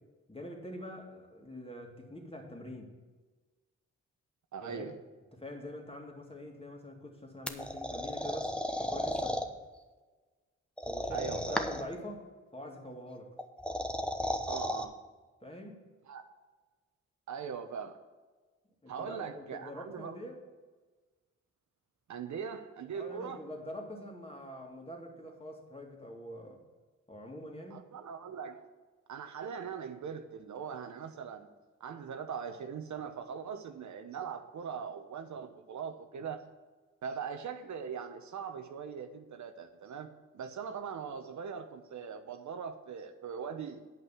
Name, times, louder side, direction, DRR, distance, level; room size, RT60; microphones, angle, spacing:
voice 1, 0.3-2.9 4.6-4.9 5.3-8.5 8.8-9.5 10.8-12.3 12.5-13.3 15.4-15.9 18.8-20.4 22.9-26.6 27.1-27.9, equal, 20° left, 1 dB, 2.4 m, -45 dB
voice 2, 4.5-4.9 11.1-11.6 14.5-14.9 16.1-16.3 17.3-18.0 18.9-20.2 22.1-23.4 27.7-28.7 29.1-31.5 31.8-36.5 37.0-43.8, right 6 dB, 75° right, 7 dB, 0.9 m, -41 dB
sound 1, 7.5-9.5 10.8-11.9 13.4-14.8, equal, 5° left, 1.0 m, -34 dB
9.2 x 5.6 x 7.5 m, 1.3 s
cardioid pair, 75°, 29 cm